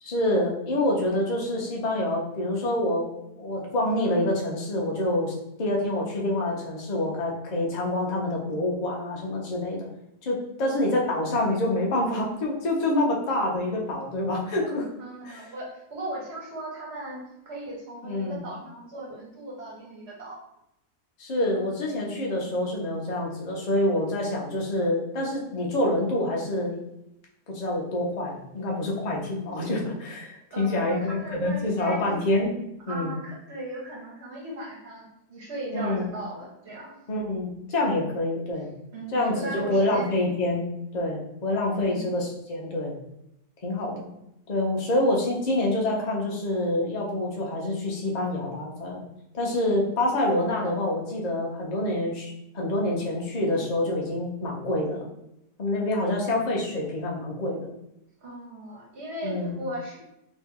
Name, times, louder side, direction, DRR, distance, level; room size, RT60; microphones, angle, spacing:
voice 1, 0.0-5.3 5.6-9.9 10.2-14.9 15.2-15.4 18.0-18.4 21.2-26.8 27.5-32.5 32.9-33.1 35.7-36.0 37.1-38.7 39.1-40.7 40.9-42.9 43.6-44.1 44.5-49.0 49.3-55.1 55.6-57.7 59.2-59.5, left 1 dB, 40° left, -2 dB, 0.6 m, -27 dB
voice 2, 15.0-20.4 30.5-32.0 32.9-36.9 38.9-40.1 41.8-42.1 58.2-60.0, right 1 dB, 45° right, -4 dB, 1.3 m, -37 dB
3.1 x 2.7 x 3.6 m, 0.83 s
omnidirectional pair, 1.7 m